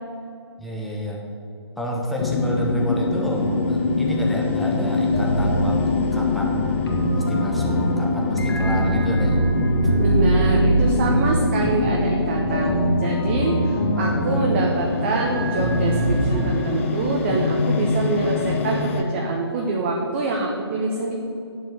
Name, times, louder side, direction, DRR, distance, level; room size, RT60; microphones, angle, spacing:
voice 1, 0.6-1.2 1.8-6.7 7.1-9.4 11.6-12.0 17.3-17.4, equal, ahead, -3 dB, 1.0 m, -29 dB
sound 1, 2.2-19.0, left 3 dB, 30° left, 0.8 m, -25 dB
sound 2, 5.1-16.7, right 1 dB, 60° left, 2.0 m, -23 dB
voice 2, 9.9-21.1, right 2 dB, 25° right, 0 dB, 1.0 m, -25 dB
9.2 x 7.2 x 7.6 m, 2.6 s
figure-of-eight pair, 140°, 14 cm